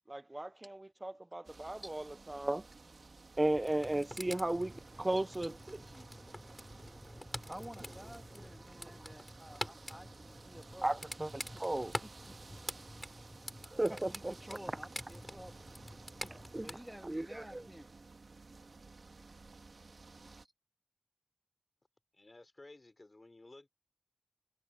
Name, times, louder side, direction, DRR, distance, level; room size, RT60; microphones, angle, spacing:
voice 1, 0.1-2.7 3.4-6.1 9.0-9.1 10.8-11.9 13.6-14.3 16.3-17.7, right 1 dB, 30° right, 0.5 m, -36 dB
sound 1, 1.4-20.4, right 3 dB, 75° right, 1.6 m, -55 dB
sound 2, 3.5-16.7, left 1 dB, 15° left, 4.6 m, -47 dB
voice 2, 7.5-10.9 14.1-15.6 16.2-17.9, equal, 5° right, 1.9 m, -51 dB
voice 3, 22.1-23.7, left 2 dB, 45° left, 3.9 m, -55 dB
wide cardioid pair, 55°, 0 cm